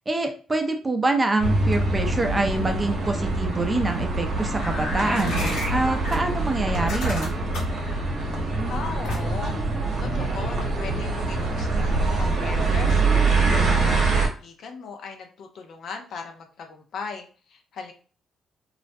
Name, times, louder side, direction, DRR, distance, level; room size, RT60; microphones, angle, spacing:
voice 1, 0.1-5.4 5.7-7.3, right 2 dB, 20° right, 5 dB, 0.4 m, -25 dB
sound 1, 1.4-14.3, right 3 dB, 60° right, 0.7 m, -24 dB
sound 2, 4.6-6.2 6.7-7.8 9.0-9.5, left 1 dB, 85° left, 0.9 m, -31 dB
voice 2, 8.6-9.6 10.0-17.9, left 5 dB, 65° left, 4 dB, 0.5 m, -38 dB
2.3 x 2.0 x 2.5 m, 0.39 s
cardioid pair, 90°, 0 cm